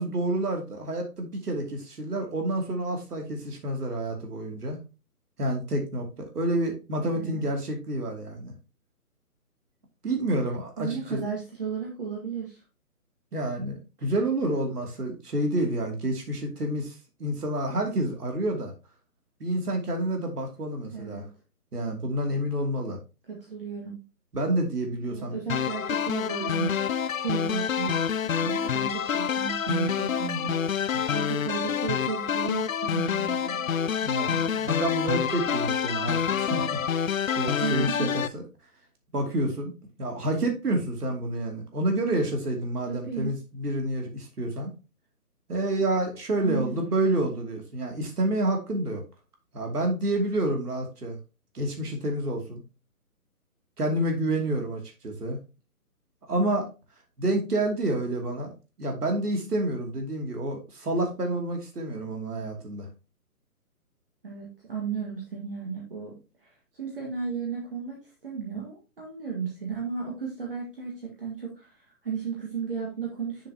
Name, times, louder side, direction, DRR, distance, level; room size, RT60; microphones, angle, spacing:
voice 1, 0.0-4.8 5.4-8.5 10.0-11.2 13.3-18.7 19.4-21.3 21.7-23.0 24.3-25.4 30.9-31.1 34.0-37.0 37.4-38.4 39.1-39.7 40.0-44.7 45.5-49.0 49.5-51.2 51.5-52.6 53.8-55.4 56.3-56.7 57.2-58.5 58.8-62.9, right 1 dB, 85° right, 3 dB, 2.7 m, -29 dB
voice 2, 10.8-12.6 20.9-21.2 23.3-24.0 25.1-26.8 27.2-33.7 37.6-38.1 42.9-43.3 46.4-47.2 64.2-66.2 66.4-66.5 66.8-68.0 68.2-73.5, right 6 dB, 35° right, -3 dB, 1.8 m, -34 dB
sound 1, 25.5-38.3, left 8 dB, 60° left, 0.5 m, -27 dB
7.1 x 6.8 x 2.9 m, 0.29 s
hypercardioid pair, 175°, 46 cm